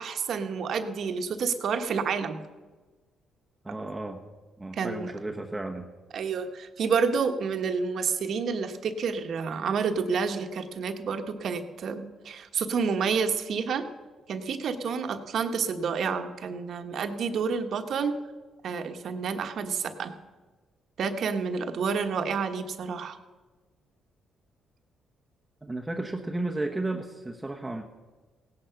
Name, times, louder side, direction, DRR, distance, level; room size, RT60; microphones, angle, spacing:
voice 1, 0.0-2.4 4.7-5.1 6.1-13.8 14.3-18.2 18.6-20.1 21.0-23.2, right 5 dB, 65° right, 7 dB, 1.3 m, -29 dB
voice 2, 3.6-4.2 4.6-5.9 25.6-27.8, right 2 dB, 15° right, 2 dB, 1.1 m, -33 dB
17.0 x 10.0 x 5.9 m, 1.3 s
cardioid pair, 90°, 0 cm